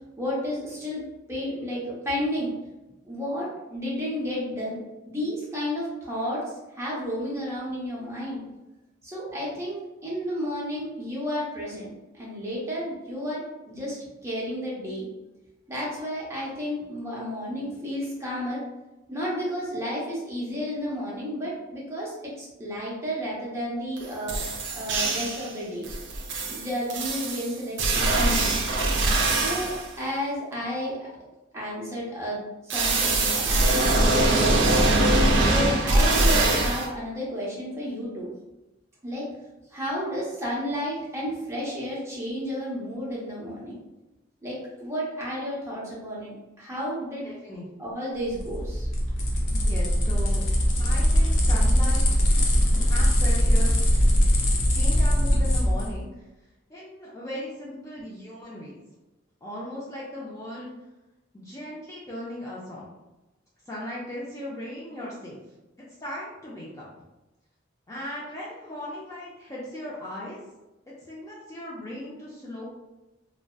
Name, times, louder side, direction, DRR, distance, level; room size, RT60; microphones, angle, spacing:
voice 1, 0.2-1.0 1.3-2.5 3.0-4.8 5.1-8.4 9.0-15.1 15.7-18.6 19.1-24.4 24.7-25.8 26.4-28.7 29.3-31.1 31.5-32.4 32.6-35.0 35.5-38.3 39.0-39.3 39.7-43.8 44.4-47.3 47.8-48.9, equal, 15° right, -6 dB, 0.7 m, -32 dB
sound 1, 24.0-24.1 24.3-25.5 25.8-29.9 32.7-36.9, right 2 dB, 65° right, 0.4 m, -22 dB
voice 2, 47.2-47.7 49.5-50.4 50.8-52.0 52.7-53.8 54.7-56.1 56.7-58.8 59.4-60.7 61.3-62.9 63.7-65.4 66.0-66.9 67.9-70.4 71.1-72.7, left 1 dB, 15° left, -7 dB, 0.4 m, -37 dB
sound 2, 48.3-55.9, equal, 70° left, 0.5 m, -21 dB
2.6 x 2.1 x 2.2 m, 1.0 s
head